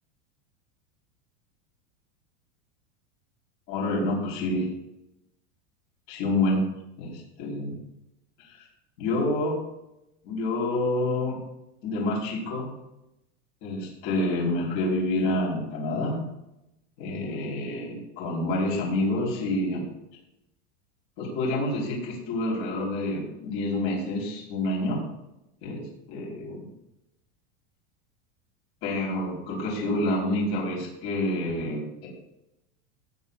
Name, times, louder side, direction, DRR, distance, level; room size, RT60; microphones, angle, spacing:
voice 1, 3.7-4.7 6.1-7.8 8.4-8.7 9.0-9.6 10.2-11.4 11.8-12.8 13.6-16.2 17.0-19.8 21.2-25.0 25.6-26.7 28.8-32.1, left 1 dB, 45° left, -3 dB, 3.7 m, -28 dB
18.0 x 9.8 x 2.4 m, 0.89 s
supercardioid pair, 160°, 37 cm